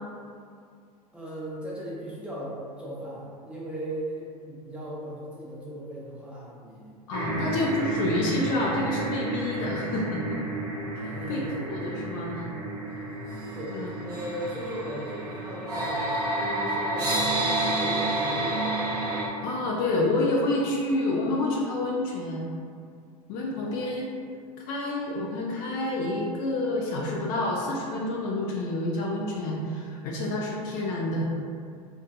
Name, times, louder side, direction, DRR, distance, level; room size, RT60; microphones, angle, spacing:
voice 1, 1.1-7.0 11.0-11.6 13.5-18.7 19.8-19.9 23.6-23.8, right 1 dB, 5° right, -8 dB, 0.7 m, -38 dB
voice 2, 7.1-10.4 11.0-12.5 13.7-13.9 19.4-22.4 23.3-24.1 24.7-31.3, left 2 dB, 50° left, -2 dB, 0.4 m, -28 dB
sound 1, 7.1-19.3, right 1 dB, 80° right, 0.5 m, -30 dB
2.4 x 2.3 x 2.3 m, 2.2 s
hypercardioid pair, 85°, 20 cm